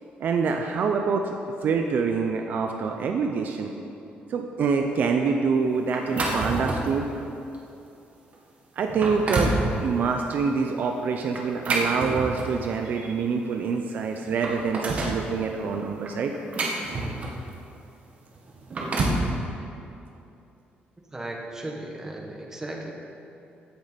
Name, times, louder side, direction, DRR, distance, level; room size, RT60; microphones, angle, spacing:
voice 1, 0.2-1.3 1.6-3.7 4.3-7.1 8.8-9.5 9.8-16.3, right 5 dB, 55° right, 4 dB, 0.7 m, -26 dB
sound 1, 5.9-7.0 7.5-7.7 8.3-8.4 8.8-9.6 11.3-12.7 13.7-13.8 14.1-15.2 16.1-17.5 18.5-19.3, right 2 dB, 40° right, 1.5 m, -28 dB
voice 2, 21.1-22.9, right 1 dB, 15° right, 0 dB, 1.4 m, -36 dB
16.0 x 6.6 x 5.3 m, 2.7 s
cardioid pair, 150°, 4 cm